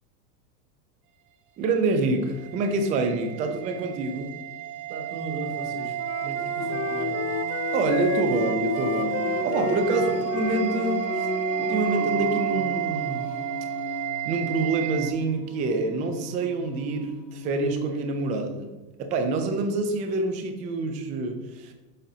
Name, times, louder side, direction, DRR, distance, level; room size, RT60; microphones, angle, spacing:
voice 1, 1.6-4.4 7.7-11.3 11.6-13.3 14.3-18.7 19.0-21.7, right 3 dB, 20° right, 5 dB, 0.3 m, -27 dB
sound 1, 2.0-15.1, right 13 dB, 50° right, 0.7 m, -31 dB
voice 2, 4.9-7.2 9.8-10.1, right 2 dB, 80° right, 3 dB, 1.7 m, -38 dB
Wind instrument woodwind instrument, 5.5-11.9, left 12 dB, 50° left, 0.4 m, -35 dB
Singing, 6.6-18.3, left 5 dB, 80° left, 1.0 m, -34 dB
7.2 x 5.3 x 2.7 m, 1.2 s
supercardioid pair, 125°, 48 cm